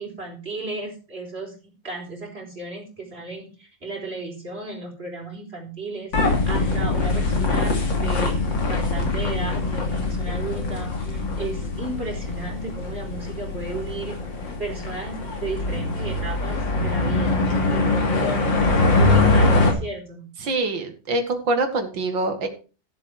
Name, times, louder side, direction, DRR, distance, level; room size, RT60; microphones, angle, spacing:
voice 1, 0.0-8.4 8.7-14.1 14.6-17.4 17.7-18.7 19.0-20.2, right 2 dB, 35° right, 0 dB, 4.0 m, -34 dB
sound 1, 6.1-19.7, left 2 dB, 90° left, 3.3 m, -23 dB
voice 2, 20.4-22.5, right 2 dB, 85° right, 7 dB, 2.5 m, -24 dB
14.0 x 7.5 x 4.7 m, 0.35 s
omnidirectional pair, 2.0 m